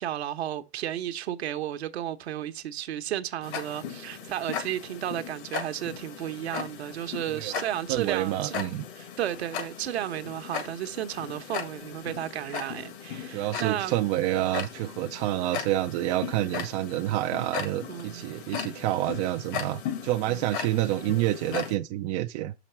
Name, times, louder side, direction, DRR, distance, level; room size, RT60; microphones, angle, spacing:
voice 1, 0.0-8.6 9.0-14.0 17.9-18.3 20.3-20.5, right 11 dB, 70° right, 1.0 m, -33 dB
Tick-tock, 3.4-21.8, left 8 dB, 50° left, 1.7 m, -38 dB
voice 2, 7.9-8.8 13.3-22.5, right 14 dB, 30° right, 0.4 m, -28 dB
6.4 x 6.0 x 4.4 m
hypercardioid pair, 125°, 34 cm